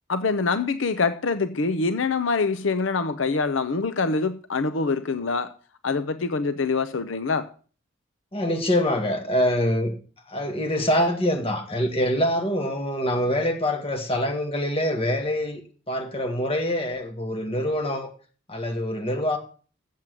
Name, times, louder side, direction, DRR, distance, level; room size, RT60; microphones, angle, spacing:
voice 1, 0.1-5.5 5.8-7.5, left 4 dB, 75° left, 0.7 m, -25 dB
voice 2, 8.3-10.0 10.3-15.6 15.9-18.1 18.5-19.4, equal, 30° left, 1.9 m, -25 dB
7.6 x 7.5 x 7.7 m
head